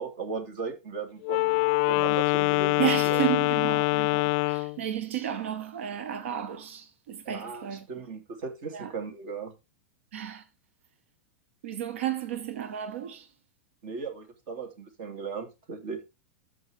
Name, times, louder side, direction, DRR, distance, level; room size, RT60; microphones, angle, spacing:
voice 1, 0.0-3.2 7.2-9.5 13.8-16.0, right 5 dB, 55° right, 3.0 m, -37 dB
Wind instrument woodwind instrument, 1.2-4.8, left 24 dB, 50° left, 0.4 m, -24 dB
voice 2, 2.8-7.9 8.7-8.9 10.1-10.4 11.6-13.3, right 12 dB, 75° right, 1.1 m, -32 dB
13.5 x 5.0 x 3.5 m
hypercardioid pair, 105°, 7 cm